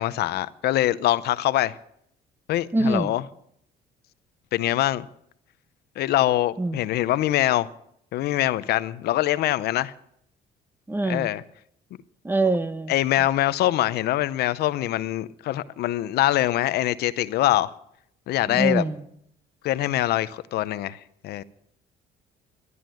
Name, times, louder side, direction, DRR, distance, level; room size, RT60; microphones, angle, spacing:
voice 1, 0.0-1.7 2.5-3.2 4.5-5.1 6.0-7.7 8.1-9.9 11.0-11.4 12.9-17.7 18.3-18.8 19.6-21.0 21.2-21.4, left 14 dB, 70° left, 0.7 m, -23 dB
voice 2, 2.7-3.1 6.6-6.8 10.9-11.3 12.2-12.9 18.5-19.0, right 2 dB, 10° right, 0.8 m, -24 dB
13.0 x 11.0 x 7.7 m
cardioid pair, 110°, 17 cm